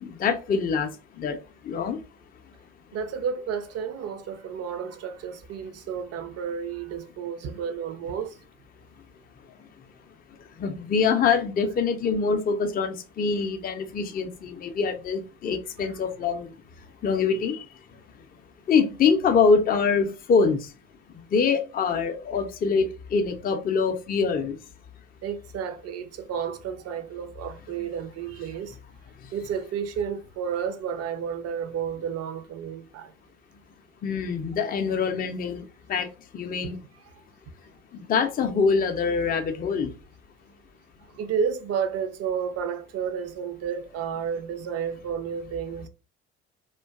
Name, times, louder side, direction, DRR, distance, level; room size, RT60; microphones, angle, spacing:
voice 1, 0.0-1.4 1.6-2.0 10.6-16.5 17.0-17.7 18.7-20.7 21.1-24.6 29.2-29.3 34.0-36.8 37.9-39.9, left 5 dB, 25° left, 0.4 m, -25 dB
voice 2, 2.9-8.4 15.8-15.9 25.2-28.8 29.3-33.1 36.6-36.8 37.1-37.2 41.1-45.9, right 7 dB, 45° right, 0.5 m, -31 dB
2.5 x 2.2 x 2.3 m
hypercardioid pair, 55°, 35 cm